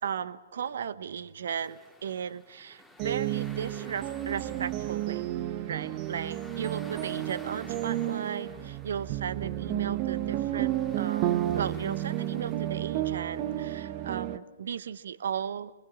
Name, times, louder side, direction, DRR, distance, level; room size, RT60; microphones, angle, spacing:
voice 1, 0.0-5.3 5.7-15.7, right 7 dB, 65° right, 16 dB, 1.0 m, -36 dB
sound 1, 1.5-13.8, left 1 dB, ahead, 2.6 m, -53 dB
sound 2, 3.0-14.4, right 13 dB, 35° right, 1.0 m, -32 dB
25.0 x 21.0 x 7.2 m, 1.2 s
hypercardioid pair, 125°, 0 cm